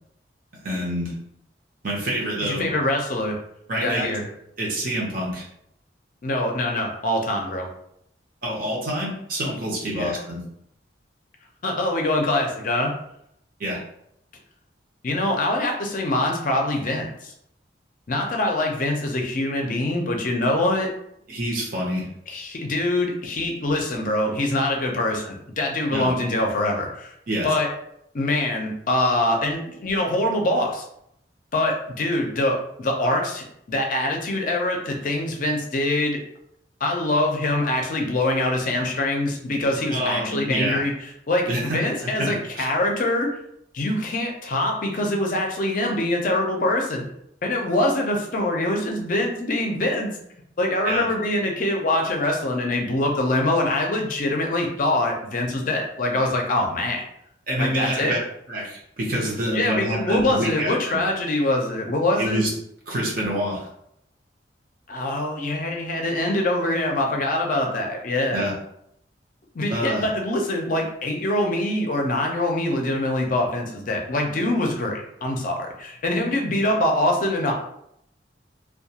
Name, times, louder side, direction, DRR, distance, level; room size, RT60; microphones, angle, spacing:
voice 1, 0.6-1.1 1.8-2.7 3.7-4.1 4.6-5.5 8.4-10.4 13.6-13.8 21.3-22.1 25.9-26.1 27.3-27.5 39.9-40.8 41.5-42.7 50.8-51.1 57.5-58.2 58.5-61.0 62.2-62.5 62.9-63.7 68.3-68.5 69.7-70.1, equal, 50° right, -2 dB, 0.7 m, -27 dB
voice 2, 2.4-3.4 3.8-4.3 6.2-7.7 9.9-10.1 11.6-12.9 15.0-17.3 18.1-20.9 22.3-27.1 27.4-27.7 28.1-30.8 31.5-36.2 36.8-40.9 41.3-43.3 43.7-47.1 47.4-50.1 50.6-57.0 57.6-58.1 59.5-62.4 64.9-68.5 69.5-77.5, left 1 dB, 45° left, 1 dB, 0.5 m, -24 dB
2.3 x 2.2 x 2.8 m, 0.74 s
head